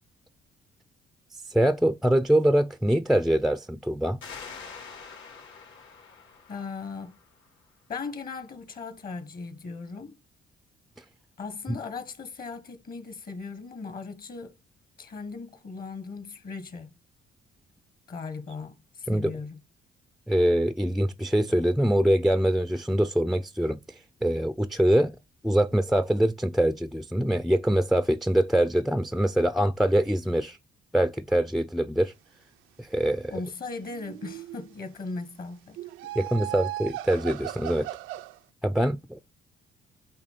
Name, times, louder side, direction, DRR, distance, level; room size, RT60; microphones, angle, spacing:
voice 1, 1.5-4.2 11.7-11.8 19.1-19.3 20.3-23.8 24.2-25.2 25.4-30.6 30.9-32.1 32.8-33.3 36.2-37.9 38.6-39.2, right 1 dB, ahead, 0.3 m, -24 dB
sound 1, 4.2-7.6, left 5 dB, 80° left, 3.3 m, -45 dB
voice 2, 6.5-7.1 7.9-10.2 11.4-14.6 15.0-16.9 18.1-19.6 33.3-35.8, left 4 dB, 50° left, 1.4 m, -38 dB
sound 2, 33.7-34.7 35.8-38.4, right 15 dB, 90° right, 0.4 m, -37 dB
8.8 x 3.0 x 5.6 m
cardioid pair, 90°, 20 cm